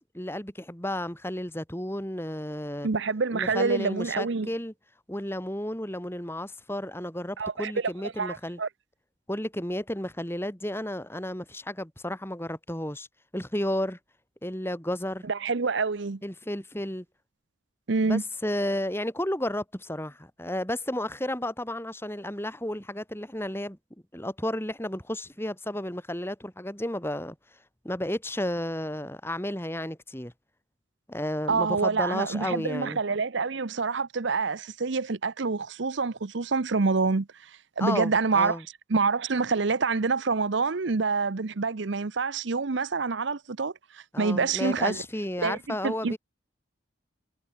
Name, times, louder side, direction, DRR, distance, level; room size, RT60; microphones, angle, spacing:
voice 1, 0.1-2.9 3.3-4.7 5.1-8.6 9.3-13.1 13.3-14.0 14.4-15.2 16.2-17.0 18.0-23.8 24.1-27.3 27.8-30.3 31.1-33.0 37.8-38.6 44.1-46.2, left 1 dB, 10° left, 2.9 m, -32 dB
voice 2, 2.8-4.5 7.4-8.7 15.3-16.2 17.9-18.2 31.5-37.5 37.8-38.6 38.9-45.0 45.4-45.6 45.8-46.2, right 4 dB, 65° right, 0.7 m, -27 dB
head